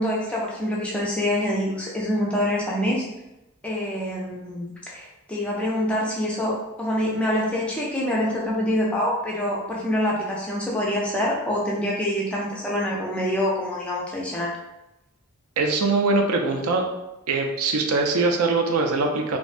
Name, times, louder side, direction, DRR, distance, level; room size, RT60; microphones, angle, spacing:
voice 1, 0.0-3.0 3.6-14.5, left 1 dB, 5° left, -4 dB, 0.3 m, -25 dB
voice 2, 15.6-16.8 17.3-19.4, right 3 dB, 75° right, 3 dB, 0.4 m, -22 dB
2.5 x 2.1 x 2.4 m, 0.93 s
head